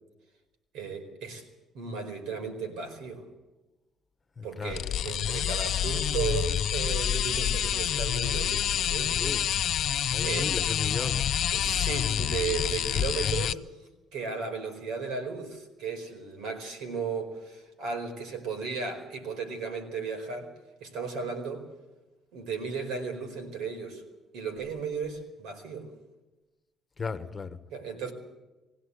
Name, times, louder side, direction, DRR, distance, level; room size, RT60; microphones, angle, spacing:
voice 1, 0.7-1.4 1.7-3.2 4.4-9.4 9.9-10.5 11.5-13.6 14.1-20.5 20.8-21.7 22.3-24.0 24.3-25.9 27.7-28.1, right 5 dB, 80° right, 6 dB, 4.6 m, -35 dB
voice 2, 4.4-4.8 9.2-9.4 10.1-11.4 27.0-27.6, left 5 dB, 25° left, 10 dB, 1.4 m, -35 dB
sound 1, 4.7-13.5, left 10 dB, 60° left, 0.6 m, -28 dB
21.0 x 16.5 x 8.3 m, 1.1 s
cardioid pair, 115°, 0 cm